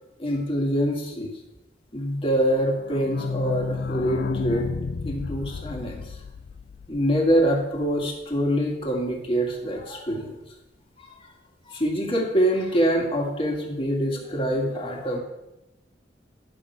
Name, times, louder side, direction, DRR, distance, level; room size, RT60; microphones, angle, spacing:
voice 1, 0.2-1.3 1.9-4.7 5.0-6.2 6.9-10.4 11.0-11.1 11.6-15.2, equal, 30° left, 0 dB, 2.2 m, -25 dB
sound 1, 2.5-8.1 8.4-8.5 8.7-8.8 9.0-9.1, left 4 dB, 55° left, 0.3 m, -32 dB
11.0 x 6.3 x 5.9 m, 0.93 s
head